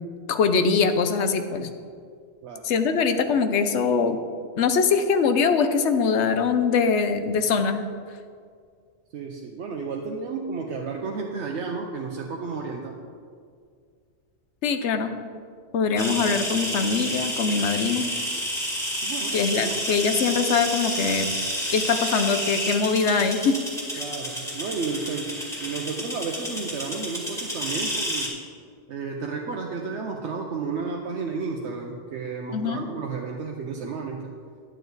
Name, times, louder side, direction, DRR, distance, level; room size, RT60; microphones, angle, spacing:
voice 1, 0.3-1.7 2.6-4.2 4.6-7.8 14.6-15.1 15.7-18.1 19.3-21.3 21.7-23.6 23.9-24.0 32.5-32.9, left 5 dB, 80° left, 8 dB, 1.0 m, -22 dB
voice 2, 9.1-13.0 19.0-20.1 24.0-28.4 28.9-34.3, right 4 dB, 80° right, 0 dB, 1.1 m, -32 dB
sound 1, 16.0-28.3, equal, 5° left, 2.0 m, -30 dB
10.5 x 9.2 x 4.0 m, 2.1 s
omnidirectional pair, 1.2 m